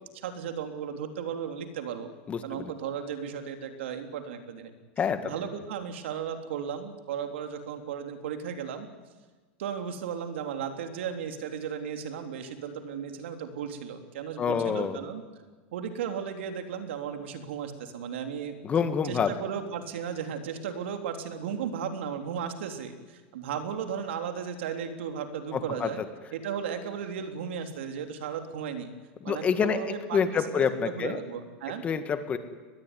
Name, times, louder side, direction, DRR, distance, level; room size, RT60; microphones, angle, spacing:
voice 1, 0.0-2.1 2.4-4.7 5.2-8.9 9.6-15.2 15.7-18.5 19.0-26.0 26.3-28.9 29.2-31.8, right 7 dB, 85° right, 6 dB, 3.4 m, -35 dB
voice 2, 2.3-2.7 5.0-5.3 14.4-15.0 18.6-19.3 25.5-25.9 29.3-29.8 30.1-31.2 31.8-32.4, left 6 dB, 20° left, 9 dB, 1.8 m, -27 dB
23.5 x 20.5 x 9.9 m, 1.4 s
supercardioid pair, 150°, 6 cm